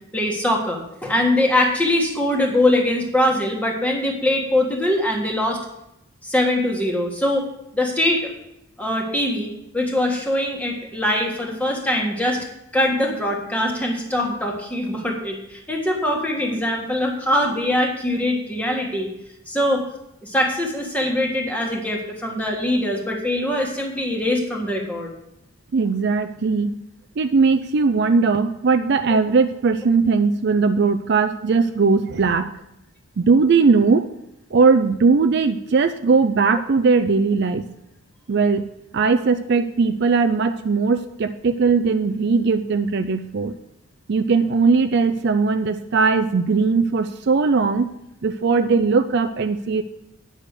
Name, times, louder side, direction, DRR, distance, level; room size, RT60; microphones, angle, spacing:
voice 1, 0.1-5.6 6.2-7.5 7.7-8.3 8.8-12.5 12.7-19.1 19.5-19.8 20.2-25.1, left 1 dB, 5° left, 0 dB, 1.5 m, -22 dB
voice 2, 25.7-26.7 27.2-32.5 33.2-34.1 34.5-37.6 38.3-38.7 38.9-43.5 44.1-47.9 48.2-49.8, right 4 dB, 50° right, 10 dB, 0.4 m, -19 dB
9.6 x 6.4 x 6.6 m, 0.82 s
head